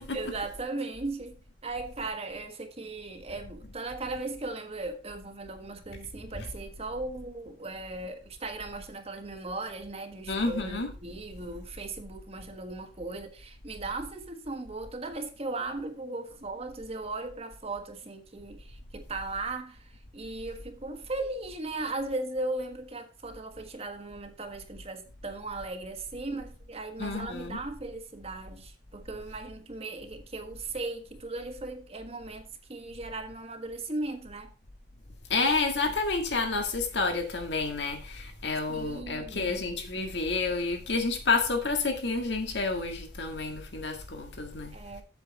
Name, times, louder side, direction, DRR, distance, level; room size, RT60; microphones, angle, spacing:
voice 1, 0.1-1.4 1.6-34.5 38.7-39.6 44.7-45.0, right 2 dB, 35° right, 1.4 m, -37 dB
voice 2, 10.3-10.9 27.0-27.6 35.3-44.7, left 3 dB, 75° left, 1.9 m, -29 dB
8.0 x 7.6 x 4.1 m
head